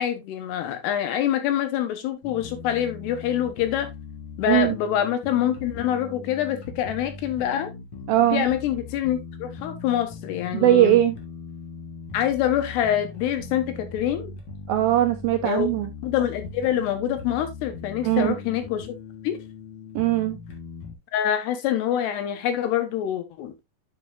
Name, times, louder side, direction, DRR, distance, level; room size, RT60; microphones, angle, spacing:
voice 1, 0.0-3.9 4.4-7.7 8.3-11.0 12.1-14.3 15.4-15.7 16.0-18.9 19.2-19.4 21.1-23.5, left 10 dB, 80° left, 3.2 m, -25 dB
sound 1, 2.2-20.9, left 4 dB, 55° left, 1.7 m, -40 dB
voice 2, 8.1-8.5 10.5-11.1 14.7-15.9 18.0-18.4 20.0-20.4, right 13 dB, 85° right, 2.1 m, -20 dB
10.5 x 5.4 x 2.6 m
omnidirectional pair, 4.9 m